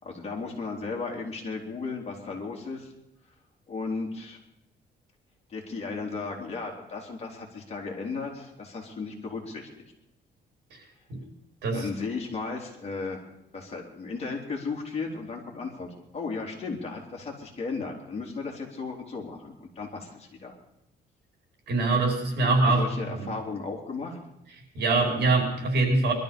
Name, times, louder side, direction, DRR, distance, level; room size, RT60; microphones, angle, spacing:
voice 1, 0.0-2.9 3.7-4.4 5.5-9.8 11.7-13.3 13.5-20.5 22.6-24.2, left 4 dB, 35° left, 0 dB, 3.5 m, -35 dB
voice 2, 21.7-23.3 24.7-26.1, right 3 dB, 70° right, 1 dB, 4.9 m, -24 dB
21.5 x 13.0 x 5.2 m, 0.84 s
cardioid pair, 140°, 18 cm